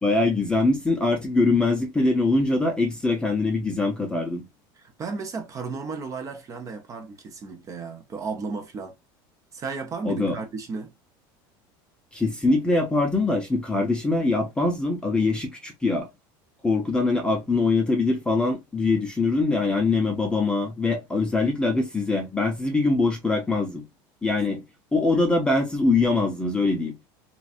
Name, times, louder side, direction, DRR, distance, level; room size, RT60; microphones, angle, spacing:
voice 1, 0.0-4.4 10.0-10.4 12.1-16.1 16.6-23.8 24.2-24.6 24.9-26.9, left 3 dB, 10° left, 0.6 m, -23 dB
voice 2, 4.8-8.9 9.5-10.9 24.4-24.5, right 4 dB, 30° right, 0.8 m, -34 dB
3.0 x 2.5 x 2.4 m
supercardioid pair, 140°, 11 cm